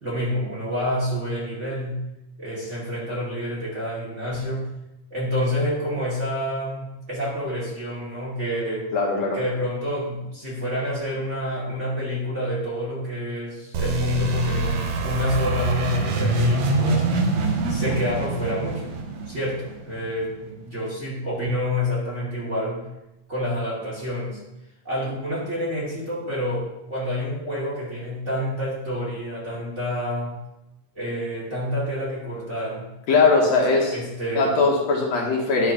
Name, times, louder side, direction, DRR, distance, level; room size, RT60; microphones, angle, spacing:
voice 1, 0.0-2.1 2.4-4.7 5.1-8.9 9.3-17.1 17.7-19.0 19.3-22.8 23.3-24.4 24.8-30.4 31.0-32.9 33.9-34.5, left 1 dB, 25° right, -6 dB, 2.4 m, -28 dB
voice 2, 8.9-9.4 33.1-33.9 34.4-35.7, left 3 dB, 65° left, -1 dB, 2.5 m, -20 dB
sound 1, 13.7-20.3, right 3 dB, 65° right, 2.1 m, -25 dB
11.0 x 4.7 x 5.8 m, 0.94 s
omnidirectional pair, 3.4 m